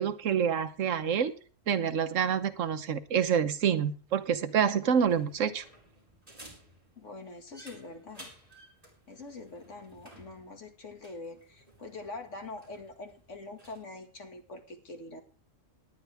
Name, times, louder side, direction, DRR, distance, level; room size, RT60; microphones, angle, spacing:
voice 1, 0.0-1.3 1.7-5.6, right 7 dB, 85° right, 12 dB, 1.3 m, -27 dB
sound 1, 4.9-13.8, right 1 dB, 30° right, 4.6 m, -55 dB
voice 2, 7.0-8.3 9.1-15.2, left 3 dB, 75° left, 5 dB, 2.3 m, -44 dB
18.5 x 10.5 x 3.4 m, 0.39 s
omnidirectional pair, 1.3 m